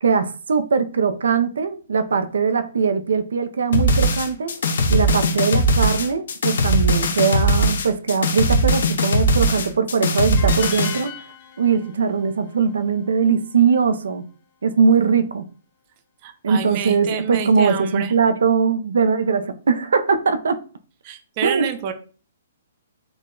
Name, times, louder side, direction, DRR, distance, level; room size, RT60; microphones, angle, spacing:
voice 1, 0.0-4.6 4.9-11.2 11.6-14.2 14.6-15.4 16.4-20.6 21.4-21.9, right 5 dB, 85° right, 0.4 m, -20 dB
sound 1, 3.7-11.0, equal, 65° left, 0.7 m, -19 dB
sound 2, 10.4-13.5, left 7 dB, 25° left, 0.6 m, -40 dB
voice 2, 16.2-18.1 21.0-21.9, right 7 dB, 30° right, 0.4 m, -28 dB
3.8 x 2.1 x 3.7 m
hypercardioid pair, 170°, 0 cm